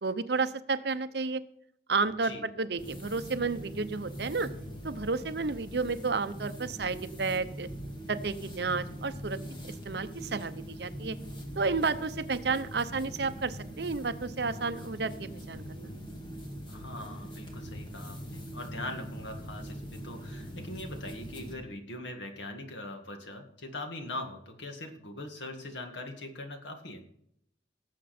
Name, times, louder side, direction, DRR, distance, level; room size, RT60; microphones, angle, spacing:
voice 1, 0.0-1.4 1.9-4.5 4.8-7.7 8.1-9.4 9.8-11.2 11.6-15.9, right 4 dB, 60° right, 11 dB, 0.8 m, -31 dB
sound 1, 2.8-21.5, equal, 25° left, 1.9 m, -42 dB
voice 2, 16.7-27.0, left 1 dB, 85° left, 4 dB, 2.0 m, -41 dB
18.5 x 7.5 x 4.3 m, 0.72 s
head